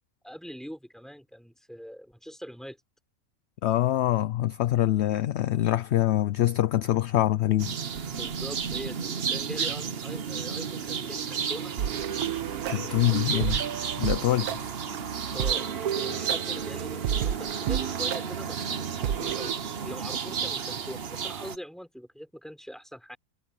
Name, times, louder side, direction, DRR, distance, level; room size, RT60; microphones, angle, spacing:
voice 1, 0.2-2.8 8.1-11.7 12.6-13.6 15.3-15.7 15.9-19.5 19.8-23.2, equal, ahead, 5.8 m, -42 dB
voice 2, 3.6-7.8 12.7-13.6 14.0-14.6, left 13 dB, 65° left, 0.7 m, -24 dB
sound 1, 7.6-21.6, right 7 dB, 45° right, 1.1 m, -32 dB
sound 2, 11.8-19.5, right 10 dB, 85° right, 1.4 m, -32 dB
omnidirectional pair, 1.5 m